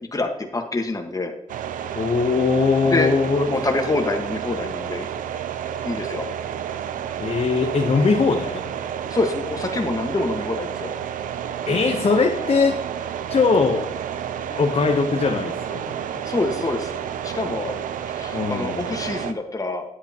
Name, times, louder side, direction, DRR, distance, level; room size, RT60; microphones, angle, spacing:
voice 1, 0.1-1.3 2.8-3.1 3.5-5.1 5.8-6.3 9.1-10.9 16.1-17.7 18.1-19.8, left 2 dB, 25° left, 4 dB, 1.5 m, -26 dB
sound 1, 1.5-19.3, right 9 dB, 85° right, 0.5 m, -30 dB
voice 2, 1.9-3.5 7.2-8.6 11.7-12.8 13.3-13.9 14.5-16.3 18.3-18.8, left 4 dB, 50° left, 3 dB, 0.9 m, -21 dB
9.7 x 8.2 x 2.9 m, 0.84 s
cardioid pair, 60°, 13 cm